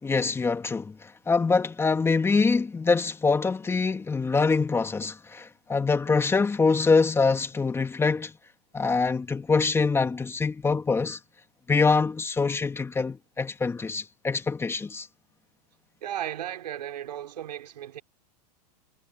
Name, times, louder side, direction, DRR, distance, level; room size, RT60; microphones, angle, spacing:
voice 1, 0.0-8.3 8.7-11.2 11.7-15.1, left 4 dB, 10° left, 2.3 m, -24 dB
voice 2, 16.0-18.0, right 11 dB, 80° right, 4.4 m, -35 dB
hypercardioid pair, 125°, 21 cm